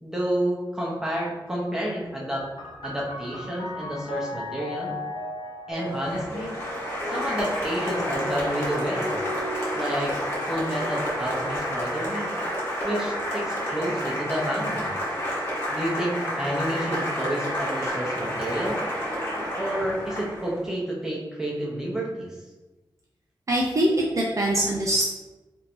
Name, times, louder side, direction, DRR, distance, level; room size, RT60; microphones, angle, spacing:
voice 1, 0.0-2.4 2.8-4.9 5.7-6.6 7.1-9.2 9.7-12.3 12.8-14.9 15.7-18.8 19.6-22.4, right 1 dB, 5° right, -5 dB, 0.9 m, -30 dB
sound 1, 2.3-15.5 16.4-17.2, left 1 dB, 60° left, 0.8 m, -38 dB
Applause, 5.8-20.6, equal, 30° left, 1.3 m, -30 dB
voice 2, 23.5-25.0, right 1 dB, 40° right, -2 dB, 0.4 m, -23 dB
3.0 x 2.6 x 4.3 m, 1.1 s
wide cardioid pair, 150°, 9 cm